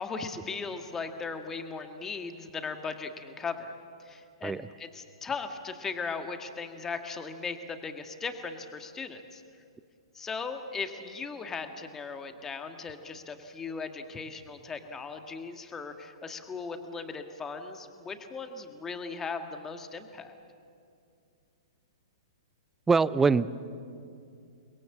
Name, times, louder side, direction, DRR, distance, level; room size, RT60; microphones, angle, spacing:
voice 1, 0.0-3.7 4.0-9.4 10.1-20.3, left 4 dB, 15° left, 6 dB, 1.9 m, -38 dB
voice 2, 22.9-23.5, right 4 dB, 10° right, 19 dB, 0.6 m, -23 dB
30.0 x 22.0 x 7.4 m, 2.4 s
figure-of-eight pair, 110°, 3 cm